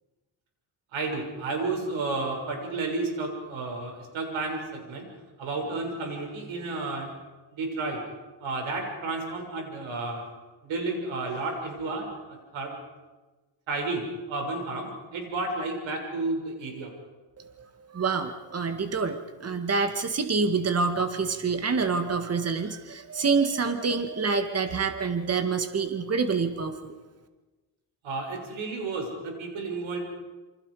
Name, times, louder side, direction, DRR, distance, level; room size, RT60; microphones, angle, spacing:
voice 1, 0.9-5.1 5.4-7.1 7.5-8.0 8.4-10.3 10.6-12.8 13.7-16.9 28.0-30.0, right 3 dB, 80° right, 2 dB, 6.7 m, -32 dB
voice 2, 17.4-26.9, right 4 dB, 30° right, 7 dB, 1.9 m, -27 dB
28.5 x 25.5 x 5.0 m, 1.2 s
cardioid pair, 130°, 46 cm